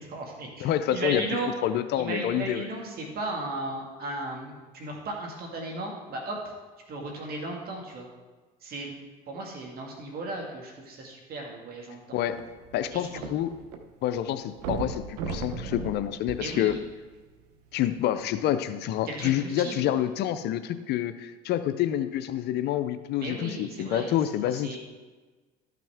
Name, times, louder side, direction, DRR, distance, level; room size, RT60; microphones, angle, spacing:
voice 1, 0.0-1.5 2.0-6.4 6.9-8.1 8.6-9.0 9.3-12.2 12.9-13.3 16.4-16.8 19.1-19.9 23.2-24.1 24.6-24.8, right 2 dB, 55° right, 0 dB, 1.9 m, -35 dB
voice 2, 0.6-1.2 1.6-2.7 12.1-12.4 12.7-13.5 14.0-16.7 17.7-24.8, left 11 dB, 60° left, 11 dB, 0.5 m, -28 dB
sound 1, 12.3-13.8 14.1-14.2 14.6-17.1 17.8-17.9, right 4 dB, 90° right, 0.9 m, -36 dB
13.0 x 5.9 x 3.5 m, 1.3 s
supercardioid pair, 95°, 19 cm